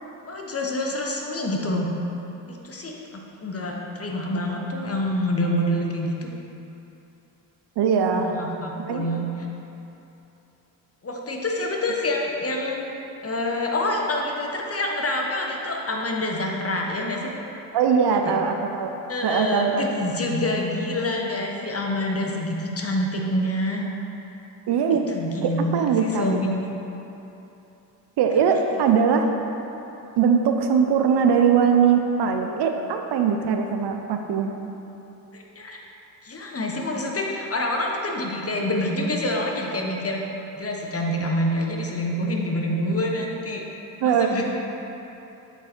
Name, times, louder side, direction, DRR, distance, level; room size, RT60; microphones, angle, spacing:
voice 1, 0.2-1.9 2.5-6.3 8.1-9.5 11.0-13.0 13.2-17.3 18.1-18.3 19.1-23.8 24.9-26.7 28.7-28.8 35.3-35.8 36.2-40.2 40.5-43.6 44.0-44.4, left 1 dB, 30° left, 0 dB, 1.1 m, -27 dB
voice 2, 7.8-8.3 8.8-9.1 17.7-18.9 19.2-19.8 24.7-25.0 25.4-26.4 28.2-29.3 30.2-34.5 44.0-44.4, right 6 dB, 55° right, 5 dB, 0.7 m, -21 dB
8.1 x 4.0 x 4.4 m, 3.0 s
hypercardioid pair, 50°, 47 cm